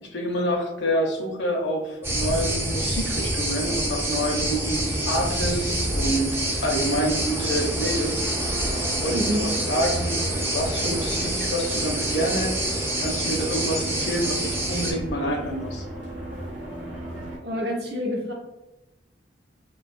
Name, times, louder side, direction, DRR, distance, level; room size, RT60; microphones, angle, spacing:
voice 1, 0.0-8.2 8.9-12.6 13.0-15.8, equal, 70° left, 0 dB, 0.6 m, -27 dB
sound 1, 2.0-14.9, right 1 dB, 15° right, 0.4 m, -27 dB
sound 2, 3.5-17.4, right 1 dB, 90° right, 0.9 m, -36 dB
voice 2, 9.1-9.5 17.4-18.3, equal, 65° right, -1 dB, 0.6 m, -27 dB
2.7 x 2.2 x 2.5 m, 0.98 s
head